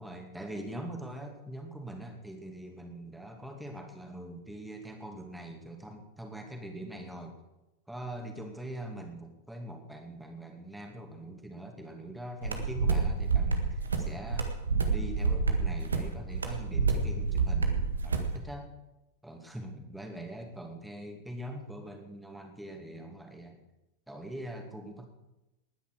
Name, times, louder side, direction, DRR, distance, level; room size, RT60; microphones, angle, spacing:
voice 1, 0.0-7.3 7.9-14.5 14.9-18.7 19.2-23.6 24.1-25.0, right 1 dB, 5° right, 3 dB, 2.5 m, -43 dB
sound 1, 12.4-18.3, right 4 dB, 75° right, 1.7 m, -28 dB
19.5 x 10.0 x 4.9 m, 0.96 s
figure-of-eight pair, 90°, 0 cm